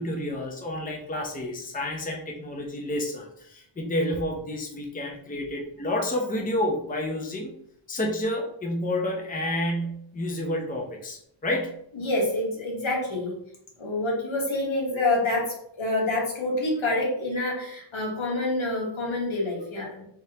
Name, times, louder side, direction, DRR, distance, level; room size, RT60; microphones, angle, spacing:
voice 1, 0.0-7.5 7.9-11.7, left 1 dB, 15° left, 0 dB, 0.6 m, -29 dB
voice 2, 11.9-13.3 13.8-20.0, left 2 dB, 75° left, -2 dB, 1.3 m, -27 dB
3.5 x 3.3 x 2.8 m, 0.73 s
wide cardioid pair, 75°, 48 cm